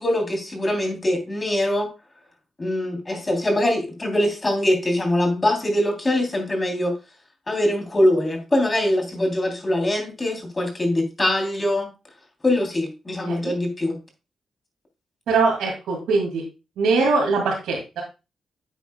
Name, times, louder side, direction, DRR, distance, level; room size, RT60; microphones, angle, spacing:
voice 1, 0.0-1.9 2.6-6.9 7.5-11.9 12.4-14.0, left 1 dB, 30° left, 4 dB, 3.5 m, -23 dB
voice 2, 15.3-16.4 16.8-18.0, right 4 dB, 85° right, -3 dB, 2.5 m, -22 dB
9.6 x 8.3 x 2.3 m, 0.28 s
supercardioid pair, 55°, 0 cm